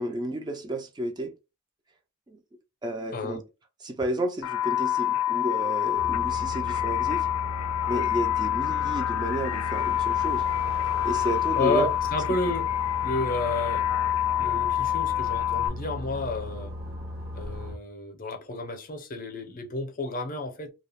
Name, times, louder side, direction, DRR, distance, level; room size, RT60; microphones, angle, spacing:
voice 1, 0.0-1.3 2.3-2.4 2.8-3.4 3.8-7.3 7.9-10.4 11.0-11.9, right 1 dB, 20° right, 0.3 m, -31 dB
sound 1, 4.4-15.7, left 12 dB, 90° left, 0.4 m, -27 dB
sound 2, 6.0-17.8, left 1 dB, 70° right, 0.9 m, -37 dB
voice 2, 11.5-12.6 13.0-13.9 14.3-16.7 17.3-20.7, left 2 dB, 40° left, 0.6 m, -31 dB
2.3 x 2.0 x 3.4 m
head